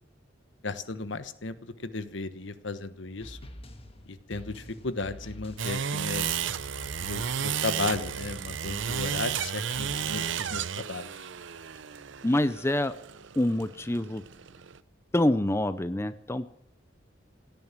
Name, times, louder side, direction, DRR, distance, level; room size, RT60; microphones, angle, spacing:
voice 1, 0.6-3.4 4.1-6.3 7.0-11.1, left 3 dB, 75° left, 12 dB, 1.2 m, -35 dB
sound 1, 3.2-10.4, equal, 30° left, 1.7 m, -46 dB
sound 2, 5.6-14.8, right 8 dB, 75° right, 0.7 m, -33 dB
voice 2, 12.2-12.9 13.4-14.2 15.1-16.5, left 1 dB, 15° left, 13 dB, 0.6 m, -26 dB
17.0 x 10.5 x 7.4 m, 0.73 s
head